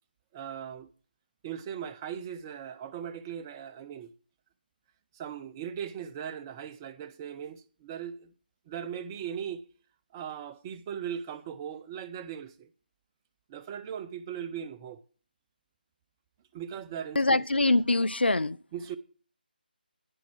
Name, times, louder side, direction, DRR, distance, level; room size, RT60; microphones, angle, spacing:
voice 1, 0.3-0.9 1.4-4.1 5.1-8.3 8.7-9.6 10.1-12.7 13.5-15.0 16.5-17.8 18.7-19.0, right 8 dB, 20° right, 0.5 m, -39 dB
voice 2, 17.2-18.6, left 2 dB, 90° left, 0.4 m, -24 dB
10.5 x 9.5 x 4.6 m
figure-of-eight pair, 155°, 5 cm